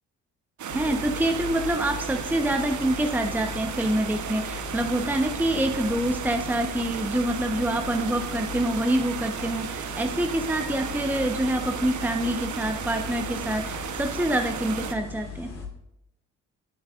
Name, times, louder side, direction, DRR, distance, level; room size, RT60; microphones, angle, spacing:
sound 1, 0.6-14.9, right 7 dB, 55° right, 1.0 m, -34 dB
sound 2, 0.7-15.7, left 4 dB, 60° left, 3.5 m, -39 dB
voice 1, 0.7-15.5, right 1 dB, 5° right, 4 dB, 1.0 m, -26 dB
16.5 x 8.5 x 2.5 m, 0.82 s
hypercardioid pair, 45°, 36 cm